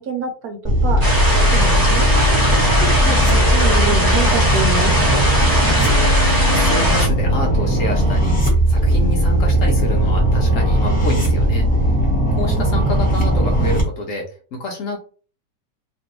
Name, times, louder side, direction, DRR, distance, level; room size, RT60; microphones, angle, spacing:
voice 1, 0.0-4.9, right 5 dB, 70° right, 5 dB, 1.1 m, -27 dB
sound 1, 0.6-13.8, right 1 dB, 5° left, 1.0 m, -17 dB
sound 2, 1.0-7.1, equal, 25° right, 0.5 m, -20 dB
voice 2, 5.5-11.9 12.3-15.0, left 1 dB, 60° left, 1 dB, 1.0 m, -28 dB
2.9 x 2.5 x 2.9 m, 0.38 s
omnidirectional pair, 1.8 m